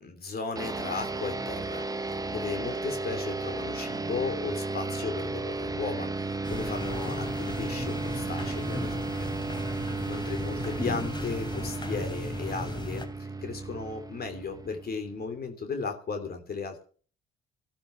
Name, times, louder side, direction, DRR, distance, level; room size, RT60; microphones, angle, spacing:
voice 1, 0.0-9.1 9.7-16.8, left 5 dB, 50° left, 6 dB, 3.2 m, -36 dB
sound 1, 0.6-15.4, right 3 dB, 20° right, 1.1 m, -34 dB
sound 2, 6.4-13.1, left 1 dB, 20° left, 3.5 m, -36 dB
13.5 x 12.0 x 7.1 m, 0.42 s
cardioid pair, 90°, 20 cm